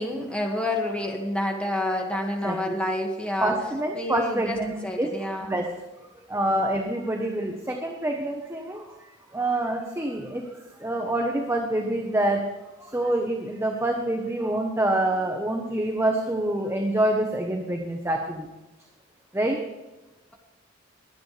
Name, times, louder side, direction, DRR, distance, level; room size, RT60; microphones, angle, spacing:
voice 1, 0.0-3.5 3.9-4.6 4.8-5.5, left 1 dB, 5° left, 0 dB, 2.1 m, -28 dB
voice 2, 2.4-2.7 3.4-4.7 5.0-5.1 5.5-5.6 6.3-8.8 9.3-10.4 10.8-12.4 12.9-18.4 19.3-19.6, right 1 dB, 15° right, 1 dB, 1.2 m, -26 dB
22.0 x 9.1 x 3.5 m, 1.1 s
head